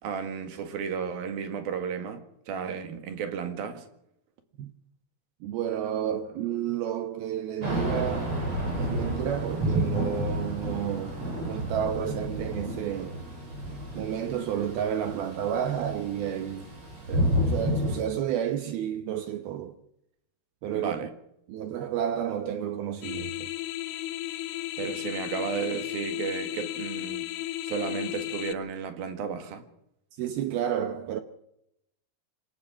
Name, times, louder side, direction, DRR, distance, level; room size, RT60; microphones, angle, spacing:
voice 1, 0.0-3.9 20.7-21.1 24.8-27.3 27.6-29.6, right 6 dB, 60° right, 3.3 m, -33 dB
voice 2, 5.4-8.3 8.8-13.2 13.9-16.7 17.1-19.7 20.6-20.9 21.5-23.5 30.2-31.2, right 9 dB, 75° right, 2.3 m, -31 dB
Thunder / Rain, 7.6-18.0, equal, 30° right, 7.3 m, -31 dB
sound 1, 23.0-28.5, left 16 dB, 80° left, 3.3 m, -34 dB
27.0 x 15.5 x 6.3 m
omnidirectional pair, 5.6 m